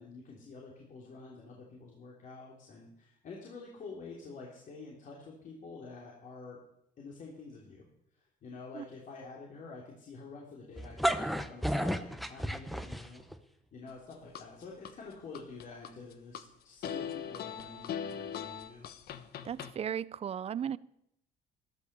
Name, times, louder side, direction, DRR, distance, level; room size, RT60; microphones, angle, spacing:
voice 1, 0.0-6.6 7.0-7.9 8.1-13.3 13.7-18.9, left 4 dB, 50° left, -2 dB, 3.3 m, -48 dB
sound 1, 10.8-13.4, equal, ahead, 1.0 m, -32 dB
sound 2, 13.9-14.9 15.3-16.4 16.8-19.7, left 8 dB, 65° left, 1.2 m, -40 dB
voice 2, 19.4-20.8, right 8 dB, 35° right, 20 dB, 0.5 m, -35 dB
13.0 x 13.0 x 6.8 m, 0.77 s
cardioid pair, 110°, 17 cm